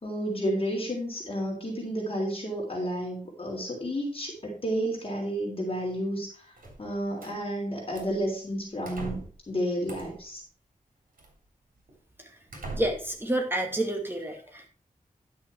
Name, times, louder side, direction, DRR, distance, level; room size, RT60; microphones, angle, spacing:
voice 1, 0.0-6.5 6.8-9.2 9.5-10.4, equal, 40° left, -3 dB, 3.2 m, -31 dB
sound 1, 6.6-7.4 7.9-8.2 8.8-9.4 9.9-10.3 11.2-11.3 11.9-12.0 12.5-13.2, right 2 dB, 80° right, 3.6 m, -41 dB
voice 2, 12.7-14.7, right 1 dB, 15° right, 3 dB, 2.2 m, -29 dB
11.0 x 6.1 x 4.5 m, 0.42 s
wide cardioid pair, 100°, 14 cm